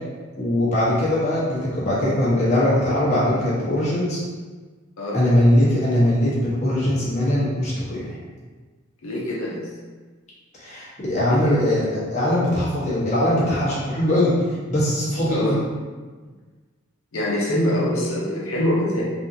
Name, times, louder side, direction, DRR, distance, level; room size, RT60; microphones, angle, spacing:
voice 1, 0.4-4.2 5.1-8.2 10.6-14.3 14.7-15.6, left 1 dB, 35° left, -8 dB, 1.1 m, -21 dB
voice 2, 9.0-9.6 11.3-11.6 15.3-15.6 17.1-19.0, left 1 dB, 80° left, -5 dB, 0.7 m, -24 dB
3.5 x 2.6 x 2.8 m, 1.4 s
head